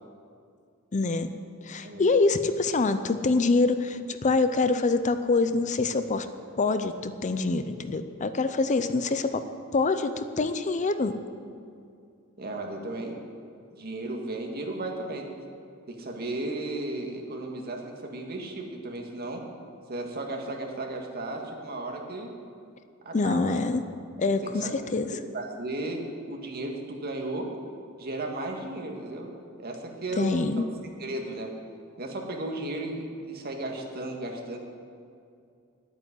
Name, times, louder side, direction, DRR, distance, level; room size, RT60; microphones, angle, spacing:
voice 1, 0.9-1.3 1.6-6.3 6.6-9.4 9.7-11.2 23.1-23.8 24.2-25.1 30.2-30.7, left 3 dB, 35° left, 10 dB, 0.5 m, -25 dB
voice 2, 12.4-13.2 13.7-15.3 15.9-19.5 19.9-22.3 23.0-23.6 24.6-24.7 25.3-27.5 28.0-29.3 29.6-30.7 31.0-31.5 32.0-34.6, right 2 dB, 50° right, 2 dB, 1.9 m, -34 dB
10.5 x 9.1 x 9.7 m, 2.4 s
head